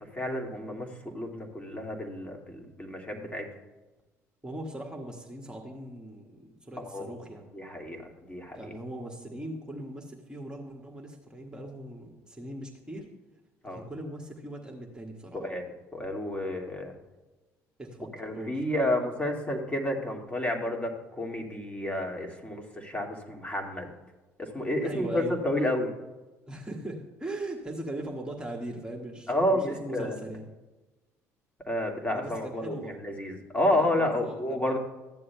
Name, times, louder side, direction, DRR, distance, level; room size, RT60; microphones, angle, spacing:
voice 1, 0.1-3.5 6.8-7.1 7.5-8.6 13.6-13.8 15.3-15.6 15.9-16.9 18.2-23.9 24.4-25.9 29.3-30.2 31.7-32.8 33.0-34.8, left 1 dB, 15° left, 1 dB, 2.2 m, -30 dB
voice 2, 4.4-7.4 8.5-13.1 13.6-15.4 17.8-18.6 24.7-25.4 26.5-30.4 32.1-32.9 33.7-34.8, right 1 dB, 10° right, 0 dB, 1.7 m, -39 dB
14.5 x 9.7 x 2.3 m, 1.1 s
hypercardioid pair, 55°, 8 cm